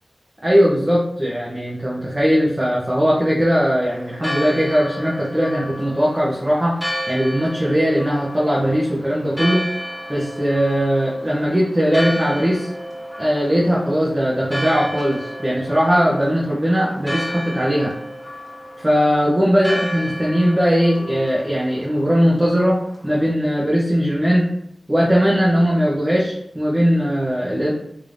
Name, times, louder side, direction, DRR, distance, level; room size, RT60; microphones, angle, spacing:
voice 1, 0.4-6.8 7.1-9.7 10.1-12.7 13.2-17.9 18.8-24.5 24.9-27.7, equal, 20° right, -6 dB, 0.8 m, -19 dB
Church bell, 3.8-23.3, equal, 5° left, 1.2 m, -32 dB
3.5 x 3.3 x 2.6 m, 0.74 s
wide cardioid pair, 80°, 0 cm